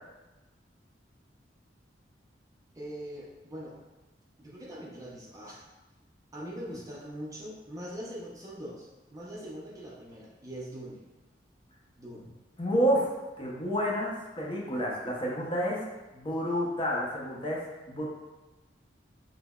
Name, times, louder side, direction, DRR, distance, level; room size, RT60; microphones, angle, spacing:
voice 1, 2.7-3.8 4.4-5.7 6.3-11.0 12.0-12.3, equal, 20° right, -5 dB, 0.5 m, -42 dB
voice 2, 12.6-13.1 13.4-15.8 16.1-17.6 17.9-18.1, equal, 30° left, -4 dB, 0.6 m, -29 dB
5.4 x 2.0 x 2.2 m, 1.1 s
head